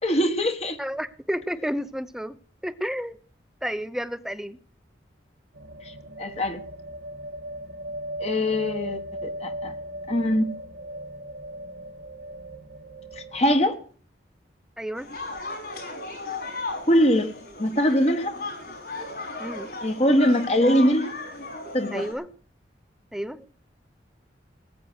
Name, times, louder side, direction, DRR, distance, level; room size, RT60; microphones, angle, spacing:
voice 1, 0.0-0.8 5.8-5.9 6.2-6.6 8.2-9.7 10.1-10.5 13.1-13.8 16.9-18.3 19.8-21.1 21.7-22.1, equal, 35° left, 1.5 m, -22 dB
voice 2, 0.8-2.4 2.6-3.2 3.6-4.6 14.8-15.1 19.4-19.7 21.9-22.3 23.1-23.5, equal, 5° right, 0.7 m, -31 dB
sound 1, 5.5-13.6, equal, 85° right, 1.8 m, -37 dB
sound 2, 15.0-22.1, left 2 dB, 55° left, 6.0 m, -36 dB
19.0 x 9.1 x 6.4 m
head